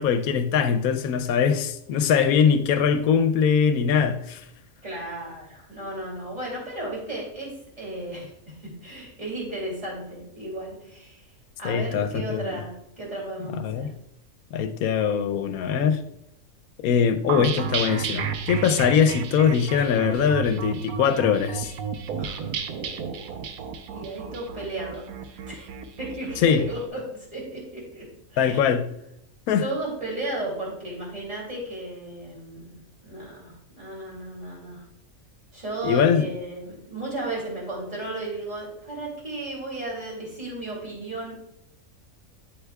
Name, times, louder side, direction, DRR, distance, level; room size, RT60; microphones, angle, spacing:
voice 1, 0.0-4.4 11.6-12.6 13.5-13.9 14.5-16.0 16.8-21.7 26.4-26.6 28.4-28.9 29.5-29.7 35.8-36.2, left 7 dB, 85° left, 1.1 m, -22 dB
voice 2, 4.8-8.3 8.8-11.2 11.6-13.9 22.2-22.4 22.7-23.4 23.9-25.7 26.0-27.0 27.3-28.0 28.3-28.6 29.6-34.8 35.5-41.3, right 2 dB, 30° right, 2.8 m, -34 dB
sound 1, 17.3-26.7, right 7 dB, 85° right, 1.1 m, -32 dB
8.3 x 8.0 x 2.3 m
omnidirectional pair, 1.5 m